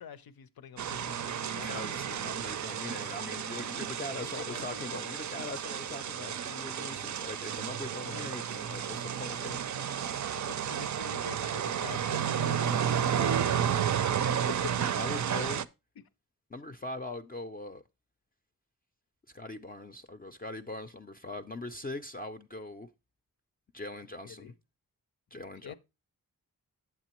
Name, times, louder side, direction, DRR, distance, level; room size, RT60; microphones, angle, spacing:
voice 1, 0.0-2.2 4.1-5.2 8.1-8.3 10.1-13.9 14.3-14.7 24.2-24.5 25.6-25.7, left 9 dB, 75° left, 0.6 m, -46 dB
sound 1, 0.8-15.6, right 9 dB, 55° right, 0.4 m, -32 dB
voice 2, 1.4-9.8 14.9-15.7 16.5-17.8 19.3-22.9 23.7-24.5 25.3-25.7, left 2 dB, 25° left, 0.4 m, -41 dB
8.2 x 7.5 x 2.9 m
wide cardioid pair, 75°, 36 cm